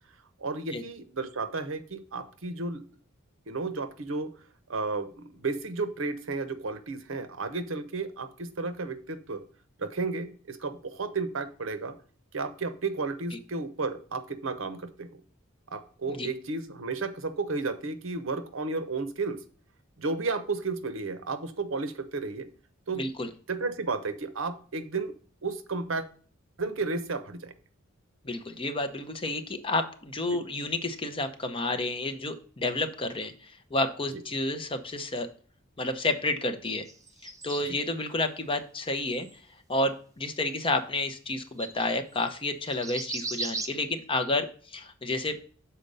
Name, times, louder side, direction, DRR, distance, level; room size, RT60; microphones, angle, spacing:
voice 1, 0.4-2.8 3.5-4.3 4.7-9.4 9.8-12.0 12.3-15.2 15.7-19.4 20.0-22.5 22.9-23.1 23.5-25.1 25.4-26.1 26.6-27.5 30.3-30.4 34.1-34.2 37.7-37.8, right 3 dB, 70° right, 11 dB, 0.8 m, -33 dB
voice 2, 23.0-23.3 28.2-35.3 35.8-36.8 37.4-39.3 39.7-45.4, left 2 dB, 25° left, 8 dB, 0.7 m, -30 dB
sound 1, 36.9-37.9 39.1-39.4 39.9-40.0 41.3-41.4 41.6-41.9 42.3-42.4 42.7-43.7, right 3 dB, 15° right, 0.7 m, -36 dB
6.8 x 4.3 x 5.3 m, 0.43 s
head